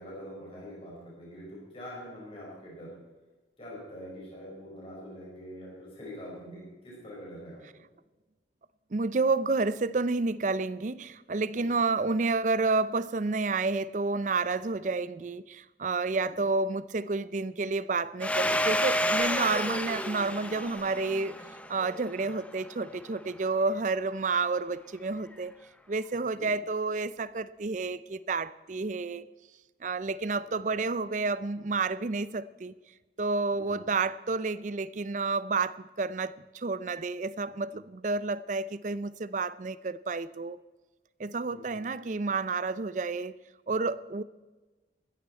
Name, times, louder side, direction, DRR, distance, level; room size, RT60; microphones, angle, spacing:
voice 1, 0.0-2.9 3.6-7.6 11.5-11.7 16.2-16.3 26.3-26.5 33.5-33.8 41.5-41.8, equal, 30° left, 5.0 m, -44 dB
voice 2, 8.9-21.3 21.7-25.5 25.9-29.3 29.8-32.7 33.2-40.6 41.2-43.3 43.7-44.2, right 3 dB, 40° right, 0.5 m, -30 dB
Domestic sounds home sounds, 18.2-22.6, left 1 dB, 5° left, 0.7 m, -30 dB
15.0 x 14.0 x 4.5 m
head